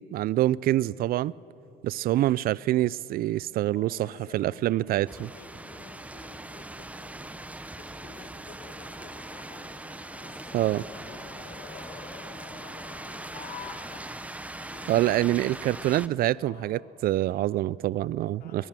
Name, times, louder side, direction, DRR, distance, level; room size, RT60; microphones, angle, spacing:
voice 1, 0.1-1.3 1.8-3.9 4.3-5.3 10.5-10.8 14.9-18.7, right 14 dB, 60° right, 0.4 m, -25 dB
voice 2, 3.6-7.5 7.8-9.2 9.5-11.6 12.2-14.2 14.5-15.0 16.4-17.5 18.2-18.7, left 4 dB, 65° left, 4.0 m, -52 dB
sound 1, 5.1-16.1, right 2 dB, 10° right, 0.8 m, -41 dB
sound 2, 8.6-14.4, left 7 dB, 45° left, 1.4 m, -47 dB
23.0 x 20.0 x 7.5 m
cardioid pair, 110°, 17 cm